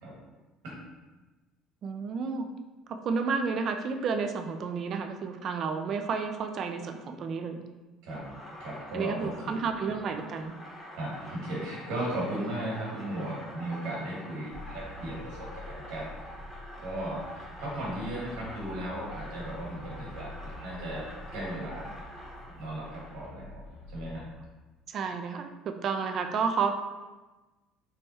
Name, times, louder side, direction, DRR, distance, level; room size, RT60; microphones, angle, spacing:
voice 1, 1.8-2.5 2.9-7.6 8.9-10.5 24.9-26.8, right 5 dB, 40° right, 6 dB, 0.3 m, -31 dB
sound 1, 8.1-23.3, left 1 dB, 10° left, 1.0 m, -46 dB
voice 2, 8.6-9.6 11.0-16.1 16.8-20.3 20.5-21.0 21.3-21.9 22.6-23.6 23.9-24.2, right 1 dB, 80° right, -4 dB, 1.4 m, -36 dB
sound 2, 14.5-24.3, left 1 dB, 50° left, 0.6 m, -46 dB
3.4 x 2.2 x 4.0 m, 1.2 s
cardioid pair, 150°, 0 cm